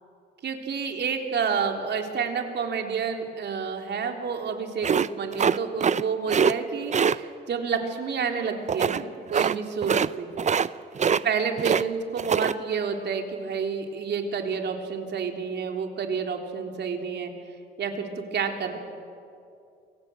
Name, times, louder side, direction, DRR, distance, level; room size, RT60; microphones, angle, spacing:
voice 1, 0.4-10.3 11.1-17.3 17.8-18.8, right 6 dB, 60° right, 3 dB, 3.6 m, -29 dB
sound 1, 4.8-6.0 6.3-6.5 6.9-7.2 8.7-9.0 9.3-9.6 9.8-10.1 10.4-10.7 11.0-11.8 12.2-12.5, right 7 dB, 35° right, 0.7 m, -23 dB
28.5 x 24.0 x 7.9 m, 2.5 s
cardioid pair, 90°, 20 cm